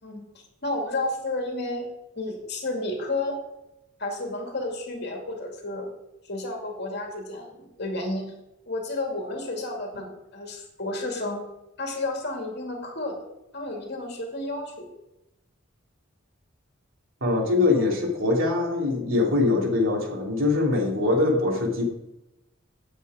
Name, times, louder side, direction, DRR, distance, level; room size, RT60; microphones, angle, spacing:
voice 1, 0.6-1.9 2.2-3.4 4.0-5.9 6.2-8.3 8.7-11.4 11.8-13.2 13.5-14.9 17.7-17.9, left 2 dB, 55° left, 1 dB, 2.5 m, -31 dB
voice 2, 17.2-21.8, left 3 dB, 80° right, -1 dB, 3.1 m, -23 dB
9.6 x 7.9 x 5.0 m, 0.89 s
head